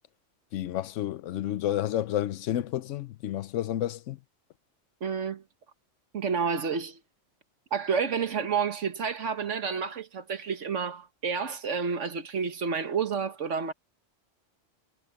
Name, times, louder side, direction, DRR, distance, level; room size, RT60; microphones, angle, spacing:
voice 1, 0.5-4.2, left 12 dB, 85° left, 1.0 m, -30 dB
voice 2, 5.0-5.4 6.1-7.0 7.7-13.7, right 6 dB, 80° right, 1.6 m, -30 dB
omnidirectional pair, 1.2 m